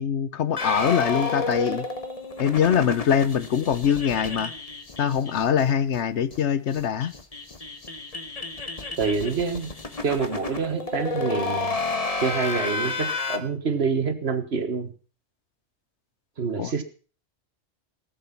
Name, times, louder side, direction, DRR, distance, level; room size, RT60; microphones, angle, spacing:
voice 1, 0.0-1.9 2.4-4.5 5.0-7.1 16.6-16.7, left 8 dB, 75° left, 15 dB, 1.1 m, -23 dB
sound 1, 0.6-5.7 5.9-6.0 6.3-6.4 6.7-13.4, left 3 dB, 35° left, 1.4 m, -31 dB
voice 2, 9.0-9.7 10.0-11.8 12.2-14.9 16.4-16.8, right 5 dB, 65° right, 9 dB, 1.8 m, -26 dB
18.5 x 7.8 x 5.8 m, 0.40 s
omnidirectional pair, 1.2 m